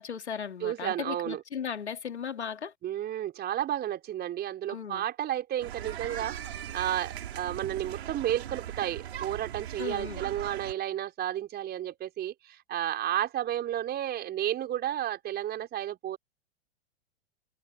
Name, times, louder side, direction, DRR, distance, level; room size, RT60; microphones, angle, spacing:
voice 1, 0.0-2.7 4.7-5.0 9.8-10.2, left 7 dB, 75° left, 3.1 m, -36 dB
voice 2, 0.6-1.4 2.8-16.2, right 12 dB, 30° right, 4.7 m, -32 dB
sound 1, 5.6-10.7, right 10 dB, 65° right, 5.7 m, -39 dB
figure-of-eight pair, 100°, 34 cm